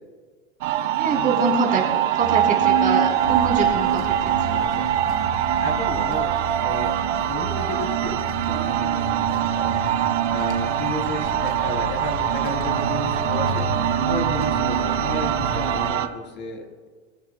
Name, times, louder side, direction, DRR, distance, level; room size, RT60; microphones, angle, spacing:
sound 1, 0.6-16.1, right 11 dB, 90° right, 1.5 m, -23 dB
voice 1, 0.9-1.8 2.1-4.1 4.4-4.5, right 4 dB, 25° right, -1 dB, 3.2 m, -24 dB
sound 2, 3.2-15.9, left 4 dB, 70° left, 2.9 m, -35 dB
voice 2, 4.5-4.9 5.6-7.0 7.3-8.2 8.5-9.8 10.3-13.7 14.1-16.9, left 1 dB, 30° left, 1 dB, 3.6 m, -32 dB
24.5 x 15.0 x 2.2 m, 1.5 s
supercardioid pair, 140°, 36 cm